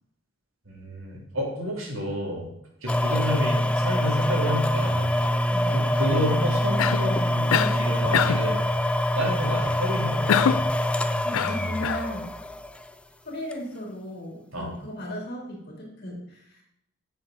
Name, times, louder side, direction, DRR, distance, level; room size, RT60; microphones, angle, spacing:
voice 1, 0.7-2.5 2.8-5.1 5.7-8.6 9.1-10.6 14.5-14.7, equal, 80° right, -2 dB, 3.1 m, -30 dB
sound 1, 2.9-12.9 13.5-13.6, left 1 dB, 5° left, 0.4 m, -25 dB
Cough, 6.8-7.1 7.5-7.8 8.1-8.5 10.3-10.7 11.3-12.1, left 8 dB, 80° left, 0.4 m, -24 dB
voice 2, 11.2-12.3 13.2-16.6, equal, 55° left, -1 dB, 3.1 m, -36 dB
9.6 x 6.8 x 3.9 m, 0.77 s
head